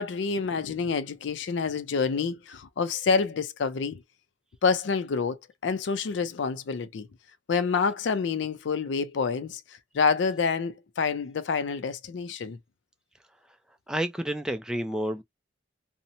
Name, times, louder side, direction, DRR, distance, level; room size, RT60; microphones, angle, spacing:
voice 1, 0.0-4.0 4.6-7.1 7.5-12.6, left 5 dB, 70° left, 0.4 m, -28 dB
voice 2, 13.9-15.2, right 1 dB, 5° right, 0.3 m, -30 dB
2.7 x 2.0 x 2.7 m
head